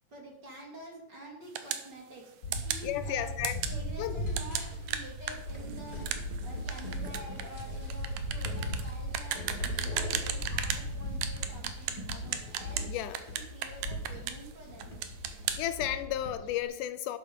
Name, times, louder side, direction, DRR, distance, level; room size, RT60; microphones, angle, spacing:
voice 1, 0.1-3.3 3.6-6.0 6.4-12.9 13.5-14.9, right 2 dB, 35° right, 2.8 m, -48 dB
sound 1, 1.6-1.9 2.5-2.9 3.4-3.8 4.4-10.9 11.2-12.9 13.1-14.5 14.8-15.6, right 10 dB, 85° right, 2.6 m, -35 dB
sound 2, 2.4-16.6, equal, 35° left, 2.5 m, -38 dB
voice 2, 2.8-3.6 4.0-4.2 12.2-12.4 12.8-13.2 14.1-14.3 15.6-17.2, left 12 dB, 80° left, 2.1 m, -34 dB
12.0 x 9.2 x 5.4 m
omnidirectional pair, 3.8 m